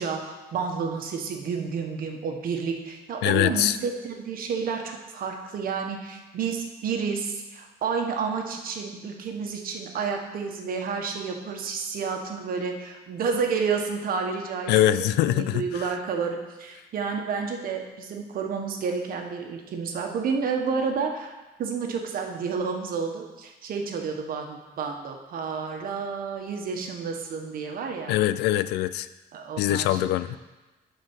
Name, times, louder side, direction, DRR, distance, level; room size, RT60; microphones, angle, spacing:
voice 1, 0.0-21.3 21.6-28.2 29.3-30.1, right 5 dB, 60° right, 3 dB, 1.4 m, -30 dB
voice 2, 3.2-3.8 14.7-15.9 28.1-29.1 29.6-30.4, left 14 dB, 80° left, 15 dB, 0.4 m, -23 dB
11.5 x 4.6 x 6.2 m, 1.2 s
cardioid pair, 110°, 17 cm